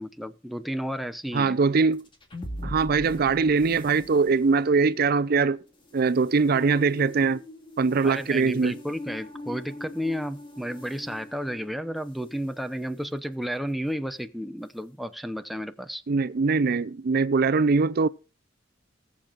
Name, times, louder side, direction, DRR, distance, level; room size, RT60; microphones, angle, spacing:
voice 1, 0.0-1.6 8.0-16.0, equal, ahead, 0.7 m, -32 dB
voice 2, 1.3-2.0 2.6-5.6 5.9-7.4 7.8-8.8 16.1-18.1, right 4 dB, 50° right, 0.5 m, -22 dB
sound 1, 1.9-12.4, left 1 dB, 25° left, 2.3 m, -42 dB
19.5 x 7.3 x 2.4 m
head